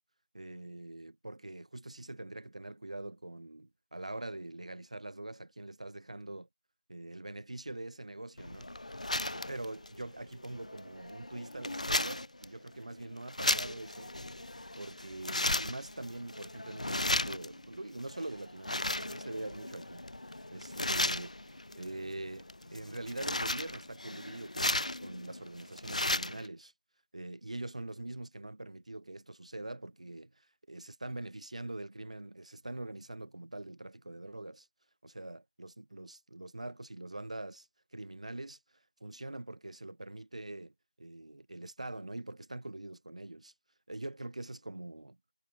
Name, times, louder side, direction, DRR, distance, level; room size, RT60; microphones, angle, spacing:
voice 1, 0.3-6.5 6.9-9.0 9.3-14.2 14.8-20.0 20.5-21.3 21.8-26.7 27.1-34.7 35.0-37.7 37.9-38.6 39.0-43.5 43.9-45.2, right 2 dB, 50° right, 4.4 m, -43 dB
sound 1, 8.4-26.5, left 1 dB, 55° left, 5.1 m, -36 dB
figure-of-eight pair, 170°, 4 cm